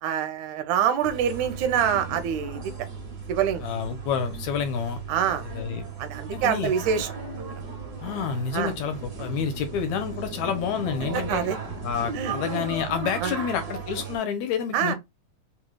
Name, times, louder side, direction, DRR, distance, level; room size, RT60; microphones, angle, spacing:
voice 1, 0.0-2.9 3.3-3.6 5.1-5.5 6.0-7.1 8.5-8.7 11.1-11.6 12.1-12.3 13.2-13.3 14.7-14.9, right 8 dB, 80° right, 2.2 m, -25 dB
sound 1, 1.0-14.2, right 4 dB, 40° right, 1.6 m, -36 dB
voice 2, 3.6-5.0 5.5-5.9 6.3-6.7 8.0-11.4 11.8-14.9, left 7 dB, 75° left, 2.0 m, -29 dB
4.7 x 3.1 x 2.2 m
omnidirectional pair, 3.5 m